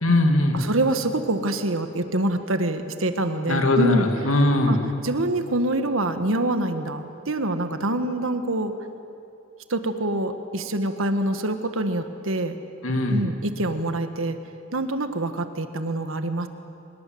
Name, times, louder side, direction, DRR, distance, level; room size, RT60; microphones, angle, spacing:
voice 1, 0.0-0.6 3.5-4.8 12.8-13.2, left 2 dB, 90° left, 4 dB, 2.5 m, -20 dB
voice 2, 0.5-4.1 4.7-4.8 5.0-8.7 9.7-12.6 13.1-14.4 14.7-16.5, right 1 dB, 80° right, 8 dB, 1.6 m, -25 dB
25.0 x 21.0 x 7.8 m, 2.6 s
head